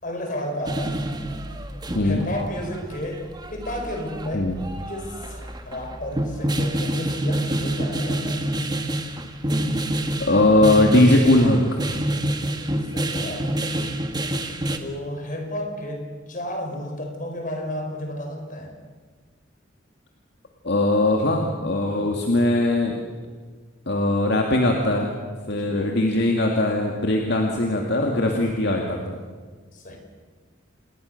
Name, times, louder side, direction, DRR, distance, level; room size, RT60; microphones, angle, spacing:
voice 1, 0.0-1.0 2.0-4.5 4.9-8.4 12.9-13.5 14.8-18.7 25.5-25.8 29.7-30.0, left 1 dB, 45° left, 3 dB, 5.3 m, -32 dB
sound 1, 0.7-14.8, right 1 dB, 20° right, 1.7 m, -27 dB
voice 2, 1.9-2.3 4.3-4.6 10.2-11.6 20.6-23.0 23.9-25.1 25.5-29.2, left 1 dB, 60° left, 1 dB, 2.4 m, -20 dB
28.0 x 21.0 x 6.8 m, 1.5 s
head